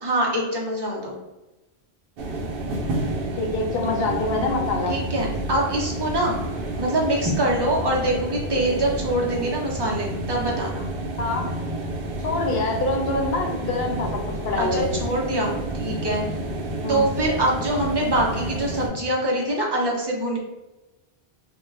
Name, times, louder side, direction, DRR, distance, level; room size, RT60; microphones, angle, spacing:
voice 1, 0.0-1.2 4.9-6.4 6.8-10.9 14.6-16.2 16.9-20.4, right 1 dB, 40° right, -2 dB, 0.3 m, -24 dB
sound 1, 2.2-18.9, right 1 dB, 65° right, 0.7 m, -30 dB
voice 2, 3.4-5.0 11.2-11.5 12.2-14.9 16.8-17.0, left 2 dB, 70° left, 1 dB, 0.8 m, -25 dB
2.3 x 2.1 x 3.2 m, 1.0 s
omnidirectional pair, 1.1 m